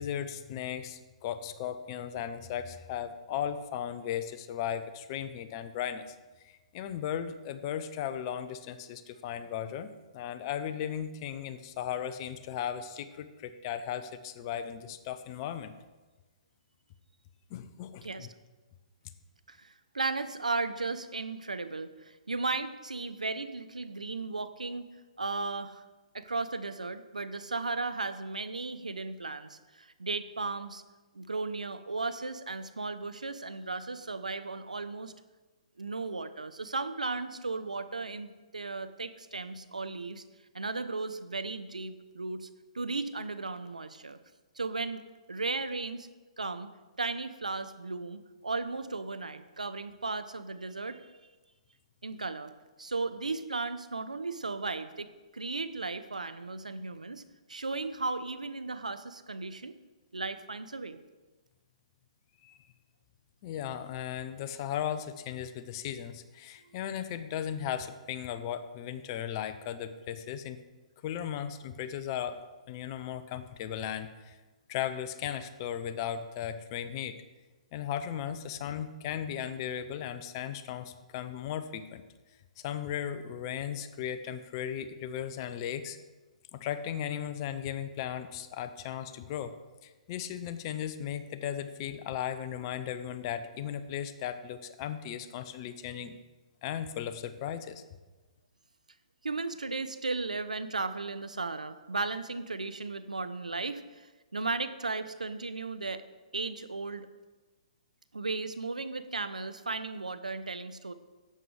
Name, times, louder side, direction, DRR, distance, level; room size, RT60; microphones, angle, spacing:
voice 1, 0.0-6.1 6.4-15.7 17.5-18.3 62.4-62.6 63.4-70.6 71.0-72.4 72.7-74.4 74.7-77.2 77.7-82.0 82.6-86.0 86.5-89.5 89.8-96.2 96.6-97.8, left 9 dB, 40° left, 11 dB, 0.8 m, -36 dB
voice 2, 19.5-24.9 25.2-25.8 26.1-30.8 31.1-35.1 35.8-40.2 40.5-42.5 42.7-44.2 44.6-45.0 45.3-46.1 46.4-46.7 47.0-51.1 52.0-52.5 52.8-57.2 57.5-59.8 60.1-61.0 99.2-104.1 104.3-106.0 106.3-107.1 108.1-110.9, right 3 dB, 90° right, 11 dB, 0.7 m, -35 dB
11.0 x 7.8 x 4.8 m, 1.2 s
figure-of-eight pair, 125°, 4 cm